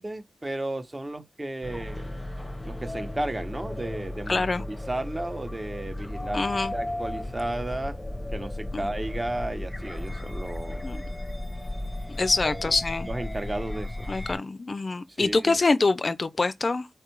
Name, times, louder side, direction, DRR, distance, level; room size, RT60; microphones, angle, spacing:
voice 1, 0.0-2.2 2.6-6.4 6.7-8.0 8.3-10.8 12.4-12.8 13.0-14.1 15.2-15.6, right 1 dB, 25° right, 0.8 m, -34 dB
sound 1, 1.6-14.4, left 1 dB, 15° left, 0.7 m, -35 dB
voice 2, 4.3-4.6 6.3-6.7 8.7-8.9 10.8-11.0 12.2-13.1 14.1-16.9, left 3 dB, 45° left, 0.4 m, -25 dB
4.4 x 2.4 x 4.4 m
wide cardioid pair, 90°, 0 cm